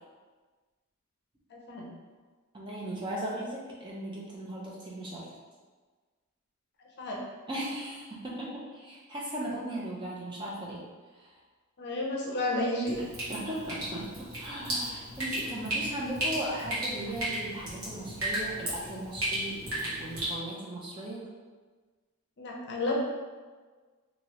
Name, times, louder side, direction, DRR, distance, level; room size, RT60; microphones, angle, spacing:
voice 1, 1.5-1.9 7.0-7.2 11.8-13.0 22.4-23.0, left 2 dB, 50° left, -3 dB, 0.6 m, -31 dB
voice 2, 2.5-5.3 7.5-10.8 11.1-11.3 13.3-21.3, right 1 dB, 20° right, -4 dB, 0.5 m, -37 dB
Drip, 12.9-20.3, right 1 dB, 70° right, 1.2 m, -35 dB
3.0 x 2.7 x 2.9 m, 1.4 s
head